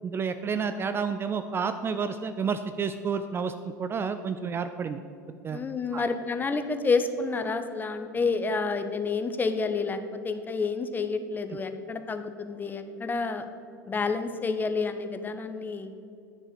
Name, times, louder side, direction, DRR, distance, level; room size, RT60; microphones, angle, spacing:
voice 1, 0.0-3.5 3.8-5.0 5.4-5.6 5.9-6.0, right 6 dB, 20° right, 10 dB, 0.4 m, -30 dB
voice 2, 5.5-10.0 10.2-13.4 13.9-15.9, left 4 dB, 20° left, 9 dB, 0.8 m, -29 dB
10.0 x 6.3 x 6.0 m, 2.6 s
figure-of-eight pair, 80°, 10 cm